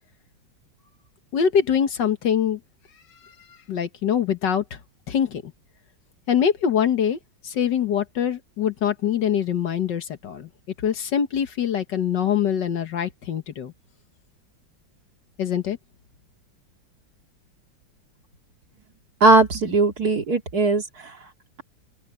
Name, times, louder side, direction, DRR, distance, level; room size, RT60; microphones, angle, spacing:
voice 1, 1.3-2.6 3.2-4.8 5.1-5.5 6.3-7.2 7.4-10.5 10.8-13.7 15.4-15.8, left 8 dB, 70° left, 1.9 m, -24 dB
voice 2, 19.2-20.8, right 3 dB, 50° right, 3.0 m, -18 dB
open air
omnidirectional pair, 2.1 m